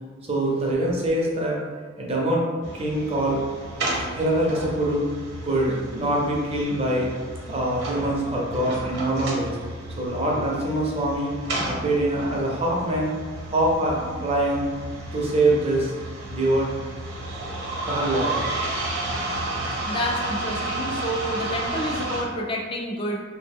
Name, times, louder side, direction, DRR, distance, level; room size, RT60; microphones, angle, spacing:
voice 1, 0.3-1.6 2.0-2.5 2.7-3.4 4.1-5.1 5.4-7.1 7.5-9.6 10.0-11.3 11.6-13.1 13.5-14.7 15.1-15.9 16.3-16.9 17.8-18.4, right 1 dB, 30° right, -3 dB, 0.6 m, -24 dB
sound 1, 2.6-22.2, right 2 dB, 55° right, 0.8 m, -32 dB
voice 2, 19.8-23.2, equal, 25° left, -1 dB, 0.4 m, -29 dB
3.0 x 2.1 x 3.5 m, 1.5 s
head